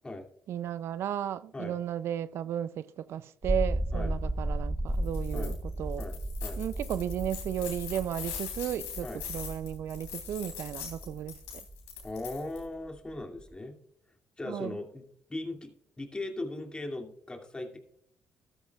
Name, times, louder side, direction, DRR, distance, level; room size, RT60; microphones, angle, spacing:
voice 1, 0.5-6.0 6.6-11.6 14.5-14.8, right 10 dB, 65° right, 0.4 m, -34 dB
sound 1, 3.4-13.5, right 1 dB, 15° right, 1.0 m, -35 dB
sound 2, 5.0-5.5 5.9-12.6, left 8 dB, 90° left, 3.2 m, -42 dB
voice 2, 6.0-6.6 9.0-9.2 12.0-13.7 14.4-15.0 15.3-17.8, left 2 dB, 20° left, 2.5 m, -38 dB
13.5 x 12.5 x 2.4 m
supercardioid pair, 60°, 5 cm